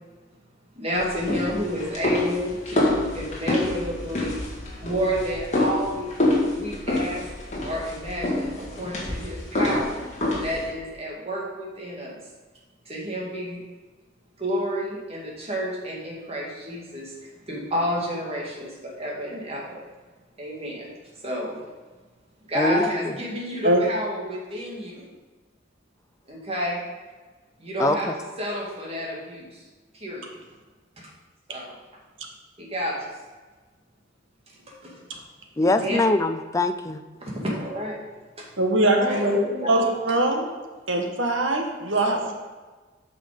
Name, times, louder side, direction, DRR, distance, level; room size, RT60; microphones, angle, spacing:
voice 1, 0.8-4.4 4.8-7.2 7.6-10.0 10.4-12.2 12.9-13.6 14.4-19.9 20.4-20.9 21.2-21.6 22.4-25.1 26.3-26.8 27.6-29.6 29.9-30.2 31.0-31.1 31.5-31.7 32.6-33.1 34.7-35.0 35.6-36.0 37.2-38.0 38.4-38.5 38.9-40.0 41.9-42.0, equal, 35° right, -3 dB, 2.1 m, -30 dB
sound 1, 1.0-10.7, left 1 dB, 40° left, 2.0 m, -27 dB
voice 2, 22.5-23.2 27.8-28.1 35.6-37.0, left 2 dB, 15° left, 9 dB, 0.4 m, -23 dB
voice 3, 38.6-39.4 39.7-40.5 40.9-42.3, right 1 dB, 85° right, 3 dB, 1.4 m, -22 dB
8.3 x 5.8 x 5.1 m, 1.3 s
head